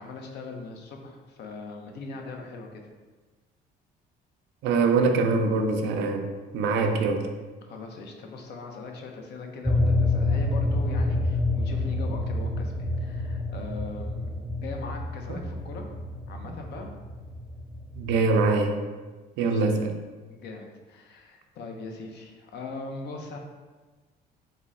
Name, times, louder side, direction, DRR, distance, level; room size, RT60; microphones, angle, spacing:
voice 1, 0.0-2.8 7.6-15.9 16.3-16.9 19.4-19.6 20.3-23.4, left 3 dB, 65° left, 3 dB, 0.6 m, -40 dB
voice 2, 4.6-6.3 6.5-7.3 15.3-15.4 17.9-18.7 19.4-19.9, right 3 dB, 75° right, 5 dB, 0.5 m, -23 dB
sound 1, 9.6-18.2, left 2 dB, 5° right, 0.4 m, -28 dB
3.8 x 2.2 x 3.6 m, 1.3 s
supercardioid pair, 85°, 19 cm